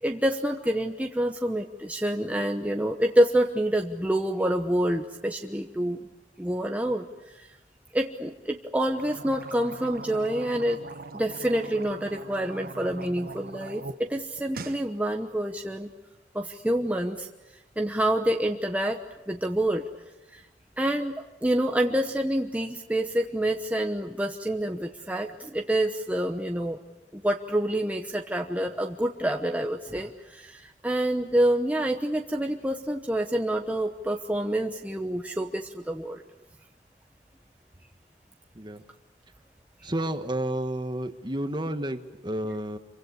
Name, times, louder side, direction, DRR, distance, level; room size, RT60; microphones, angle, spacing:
voice 1, 0.0-6.1 6.4-7.6 7.9-10.8 11.1-15.9 16.3-17.3 17.8-19.0 19.3-19.8 20.3-20.4 20.8-26.8 27.1-36.2, right 1 dB, 10° right, 3 dB, 1.0 m, -27 dB
sound 1, 8.9-14.0 14.3-14.8, right 3 dB, 55° right, 1.3 m, -41 dB
voice 2, 39.8-42.8, right 1 dB, 25° right, 9 dB, 1.5 m, -31 dB
27.0 x 24.0 x 8.2 m, 1.1 s
head